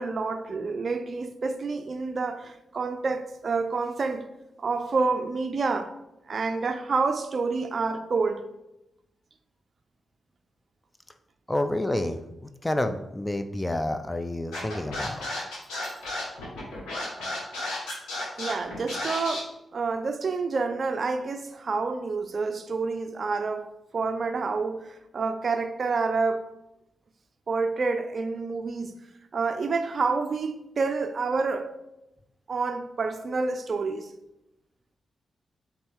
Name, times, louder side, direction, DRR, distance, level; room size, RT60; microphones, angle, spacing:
voice 1, 0.0-4.3 4.6-5.9 6.3-8.4 18.4-26.5 27.5-28.9 29.3-31.7 32.5-34.1, right 4 dB, 55° right, 0.3 m, -28 dB
voice 2, 11.5-15.3, left 1 dB, 20° left, 0.4 m, -29 dB
Scratching (performance technique), 14.5-19.4, left 2 dB, 90° left, 1.4 m, -33 dB
4.1 x 3.5 x 3.5 m
supercardioid pair, 45°, 0 cm